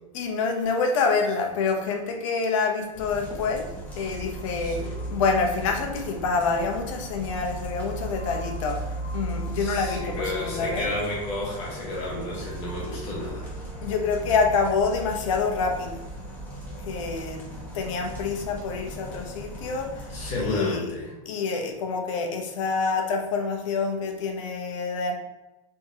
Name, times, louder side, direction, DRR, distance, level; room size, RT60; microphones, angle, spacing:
voice 1, 0.1-3.7 4.0-10.9 13.8-16.0 16.8-17.4 17.7-20.1 20.4-20.9 21.2-25.1, left 4 dB, 60° left, 3 dB, 0.9 m, -27 dB
sound 1, 2.9-20.6, right 1 dB, 10° left, 1.0 m, -37 dB
voice 2, 4.6-4.9 9.6-13.5 20.1-21.1, left 2 dB, 35° left, -4 dB, 1.4 m, -31 dB
4.5 x 3.7 x 2.8 m, 1.1 s
supercardioid pair, 160°, 18 cm